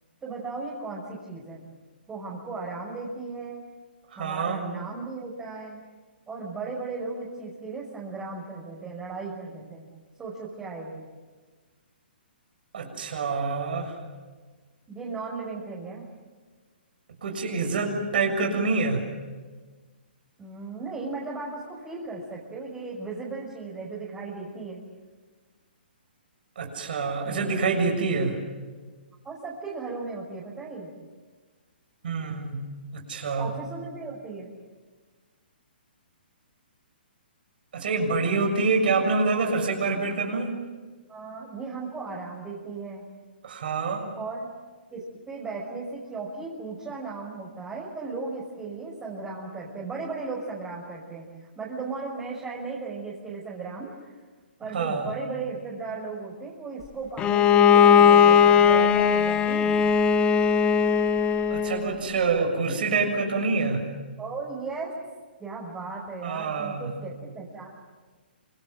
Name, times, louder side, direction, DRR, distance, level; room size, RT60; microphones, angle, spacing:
voice 1, 0.2-1.6 2.1-3.6 4.2-5.8 6.3-9.9 10.2-11.0 14.9-16.1 20.4-24.8 27.2-27.4 29.2-30.9 33.4-34.5 41.1-43.0 44.1-44.5 44.9-51.3 51.6-54.1 54.6-59.8 64.2-64.9 65.4-67.7, right 4 dB, 15° right, -4 dB, 5.8 m, -36 dB
voice 2, 4.1-4.6 12.7-14.0 17.2-19.1 26.6-28.4 32.0-32.6 32.9-33.5 37.7-40.6 43.4-44.1 54.7-55.1 61.5-63.9 66.2-66.9, right 4 dB, 60° right, 3 dB, 6.9 m, -26 dB
Bowed string instrument, 57.2-61.9, left 7 dB, 20° left, 1.3 m, -18 dB
28.0 x 26.0 x 7.7 m, 1.4 s
hypercardioid pair, 130°, 6 cm